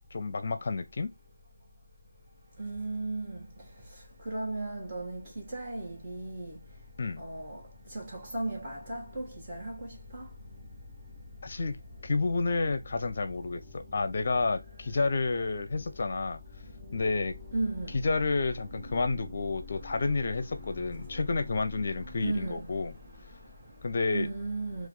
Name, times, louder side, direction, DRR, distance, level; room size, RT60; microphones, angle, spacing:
voice 1, 0.1-1.1 7.0-7.2 11.4-16.4 16.9-17.4 18.0-22.9 23.8-24.3, left 3 dB, 40° left, 0.7 m, -30 dB
voice 2, 2.6-6.6 7.2-10.8 11.9-12.0 12.9-15.0 15.8-16.1 16.4-23.8 24.1-24.9, right 2 dB, 20° right, 1.8 m, -38 dB
4.5 x 2.5 x 3.8 m
figure-of-eight pair, 160°, 0 cm